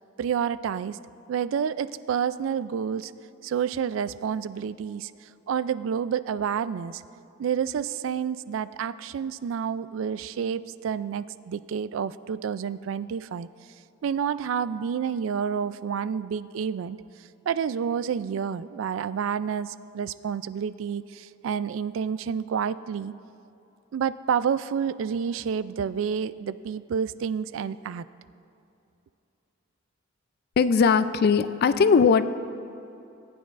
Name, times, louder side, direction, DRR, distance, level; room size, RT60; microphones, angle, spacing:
voice 1, 0.2-1.0 1.3-3.1 3.4-5.1 5.5-7.0 7.4-13.5 14.0-17.0 17.5-23.1 23.9-28.0, right 7 dB, 70° right, 16 dB, 0.3 m, -29 dB
voice 2, 30.6-32.2, left 5 dB, 50° left, 13 dB, 0.4 m, -19 dB
19.0 x 9.4 x 2.5 m, 2.7 s
head